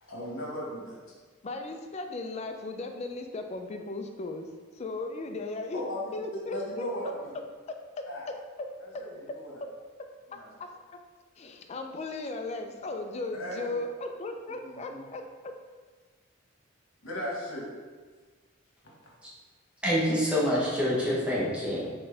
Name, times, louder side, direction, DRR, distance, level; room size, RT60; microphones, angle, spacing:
voice 1, 0.0-1.0 5.7-6.1 6.5-7.3 8.1-8.2 8.8-9.6 10.3-10.5 13.4-13.8 14.6-15.0 17.0-17.7 18.8-18.9, left 1 dB, 75° left, -4 dB, 1.3 m, -37 dB
voice 2, 1.4-4.5 4.7-5.8 6.1-6.9 7.7-8.0 9.3-9.4 10.3-10.7 11.4-15.5, left 2 dB, 30° left, 5 dB, 0.3 m, -36 dB
voice 3, 19.8-22.1, equal, 5° right, -6 dB, 0.9 m, -27 dB
4.3 x 3.7 x 3.3 m, 1.4 s
head